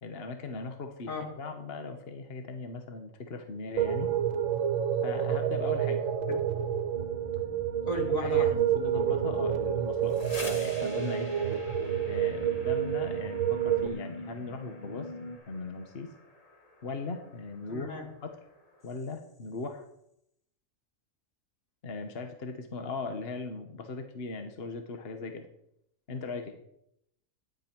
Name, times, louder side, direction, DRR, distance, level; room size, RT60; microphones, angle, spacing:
voice 1, 0.0-4.1 5.0-6.1 8.2-11.3 12.1-16.1 16.8-18.4 18.8-19.9 21.8-25.5 26.1-26.6, left 3 dB, 50° left, 6 dB, 1.4 m, -39 dB
sound 1, 3.8-13.9, right 9 dB, 75° right, 1.4 m, -29 dB
sound 2, 6.9-15.4, equal, 25° right, 1.7 m, -44 dB
voice 2, 7.8-8.5 17.7-18.1, left 3 dB, 80° left, 1 dB, 3.1 m, -35 dB
sound 3, 9.9-19.6, left 1 dB, 30° left, 1.8 m, -49 dB
15.0 x 10.5 x 4.5 m, 0.76 s
omnidirectional pair, 1.4 m